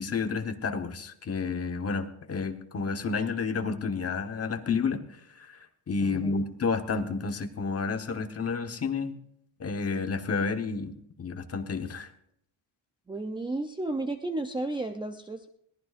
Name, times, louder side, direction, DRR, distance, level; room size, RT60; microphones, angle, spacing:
voice 1, 0.0-5.0 5.4-5.6 5.9-9.1 9.6-12.1, left 4 dB, 30° left, 7 dB, 1.1 m, -30 dB
voice 2, 6.0-6.4 13.1-15.6, right 2 dB, 10° right, 3 dB, 0.5 m, -33 dB
22.5 x 18.0 x 2.5 m, 0.72 s
cardioid pair, 170°, 47 cm